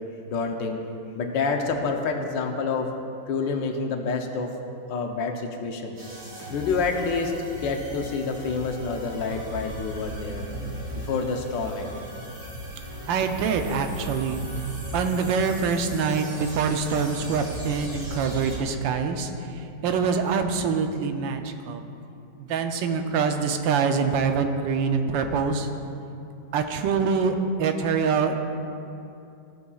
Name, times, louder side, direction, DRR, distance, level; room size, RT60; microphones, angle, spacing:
voice 1, 0.3-0.8 1.1-2.9 3.3-4.5 4.9-6.0 6.5-10.5 10.9-11.9, left 4 dB, 75° left, 3 dB, 1.5 m, -28 dB
sound 1, 6.0-18.6, right 1 dB, 55° right, 3.1 m, -37 dB
voice 2, 13.1-14.4 14.9-19.3 19.8-21.8 22.4-25.7 26.5-28.4, right 5 dB, 80° right, 6 dB, 1.4 m, -25 dB
15.0 x 8.3 x 2.4 m, 2.6 s
omnidirectional pair, 2.0 m